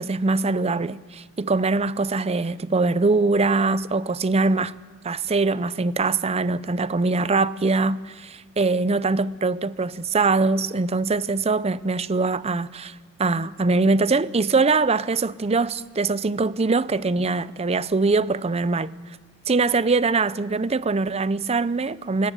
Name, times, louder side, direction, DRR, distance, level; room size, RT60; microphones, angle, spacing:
voice 1, 0.0-4.7 5.0-12.9 13.2-18.9 19.5-22.3, right 3 dB, 30° right, 0.5 m, -22 dB
21.0 x 18.0 x 8.2 m
head